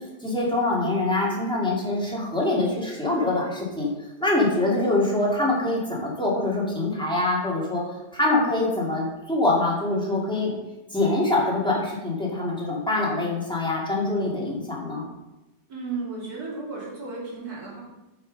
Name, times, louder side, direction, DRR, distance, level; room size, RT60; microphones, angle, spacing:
voice 1, 0.2-3.9 4.2-7.8 8.1-10.5 10.9-15.1, left 2 dB, 5° left, -5 dB, 2.3 m, -24 dB
voice 2, 15.7-17.8, right 3 dB, 55° right, -5 dB, 3.5 m, -34 dB
8.8 x 6.0 x 5.3 m, 1.0 s
omnidirectional pair, 1.9 m